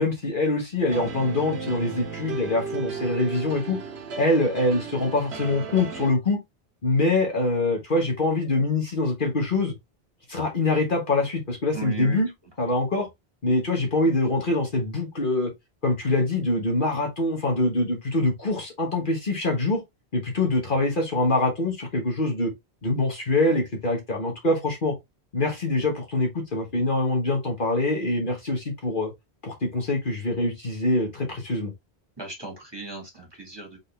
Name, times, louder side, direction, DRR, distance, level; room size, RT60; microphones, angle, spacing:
voice 1, 0.0-3.8 4.2-6.4 6.8-9.7 10.3-12.3 12.6-13.1 13.4-15.5 15.8-19.8 20.1-22.5 22.8-24.9 25.3-29.1 29.4-31.7, left 2 dB, 55° left, 1.5 m, -24 dB
sound 1, 0.9-6.1, right 5 dB, 85° right, 1.2 m, -35 dB
voice 2, 11.7-12.2 32.2-33.8, right 4 dB, 25° right, 1.9 m, -37 dB
4.1 x 3.8 x 3.3 m
omnidirectional pair, 1.1 m